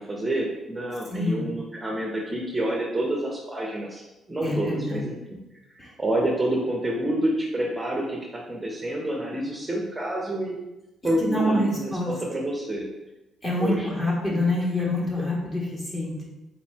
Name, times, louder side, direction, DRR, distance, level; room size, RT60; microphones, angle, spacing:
voice 1, 0.0-5.1 6.0-10.7 11.0-12.9 13.6-13.9, right 1 dB, 10° right, -2 dB, 0.6 m, -28 dB
voice 2, 1.1-1.4 4.4-5.1 5.8-5.9 11.0-12.1 13.4-16.3, left 1 dB, 20° left, -4 dB, 1.3 m, -26 dB
4.1 x 3.0 x 4.2 m, 1.0 s
cardioid pair, 130°, 0 cm